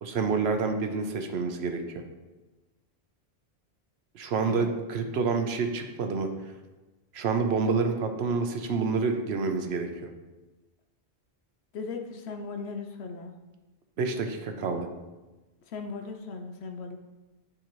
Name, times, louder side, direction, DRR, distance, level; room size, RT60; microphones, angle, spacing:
voice 1, 0.0-2.0 4.1-6.3 7.1-10.1 14.0-14.9, right 4 dB, 80° right, 5 dB, 1.0 m, -28 dB
voice 2, 11.7-13.3 15.7-17.0, left 4 dB, 85° left, 4 dB, 0.9 m, -37 dB
10.0 x 3.8 x 3.0 m, 1.1 s
omnidirectional pair, 1.1 m